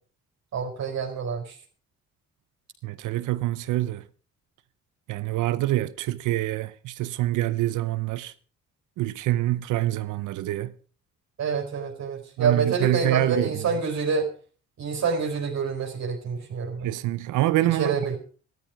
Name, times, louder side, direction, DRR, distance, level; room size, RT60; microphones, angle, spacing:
voice 1, 0.5-1.6 11.4-14.3 14.8-16.9 17.6-18.2, right 5 dB, 65° right, 4.6 m, -27 dB
voice 2, 2.8-4.0 5.1-8.3 9.0-10.7 12.4-13.6 16.8-18.1, right 15 dB, 90° right, 0.8 m, -26 dB
14.0 x 13.0 x 5.1 m
cardioid pair, 90°, 30 cm